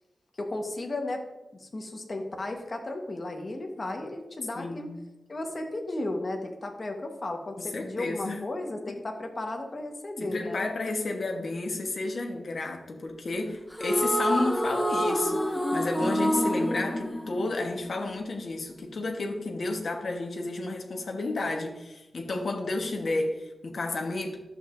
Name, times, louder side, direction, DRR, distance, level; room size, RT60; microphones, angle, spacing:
voice 1, 0.3-1.2 1.6-4.9 5.3-10.6, left 2 dB, 35° left, 2 dB, 1.2 m, -34 dB
voice 2, 4.5-5.0 7.6-8.4 8.9-9.0 10.2-24.5, left 2 dB, 60° left, 2 dB, 1.1 m, -31 dB
sound 1, 13.7-18.1, equal, 10° left, 0.6 m, -27 dB
11.0 x 7.0 x 2.5 m, 1.0 s
wide cardioid pair, 135°, 0 cm